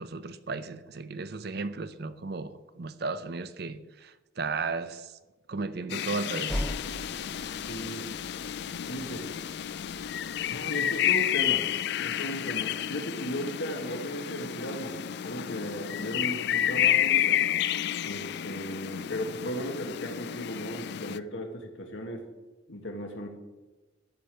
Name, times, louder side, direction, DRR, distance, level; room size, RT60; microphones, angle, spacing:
voice 1, 0.0-3.8 4.4-5.1 5.5-6.6, right 3 dB, 50° right, 0.6 m, -34 dB
sound 1, 5.9-21.2, left 11 dB, 55° left, 0.4 m, -30 dB
sound 2, 6.5-11.2, equal, 5° left, 0.6 m, -40 dB
voice 2, 7.7-8.1 8.9-9.3 10.5-11.7 12.0-17.5 18.0-22.3 22.7-23.3, equal, 70° left, 1.9 m, -36 dB
12.5 x 5.2 x 7.7 m
head